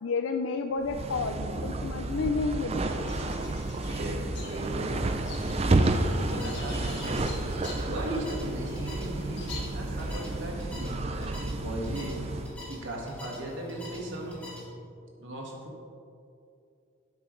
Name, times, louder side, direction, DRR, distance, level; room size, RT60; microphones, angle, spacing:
voice 1, 0.0-3.4, left 4 dB, 75° left, 6 dB, 0.4 m, -31 dB
sound 1, 0.8-12.6, right 2 dB, 30° right, 0.4 m, -31 dB
sound 2, 2.9-10.5, left 2 dB, 60° left, 1.7 m, -44 dB
voice 2, 3.7-5.0 5.8-7.4 7.8-12.2 12.6-14.4 15.2-15.8, right 1 dB, 70° right, -1 dB, 1.7 m, -37 dB
sound 3, 6.0-14.6, equal, 5° left, 1.9 m, -44 dB
11.5 x 8.2 x 3.2 m, 2.6 s
head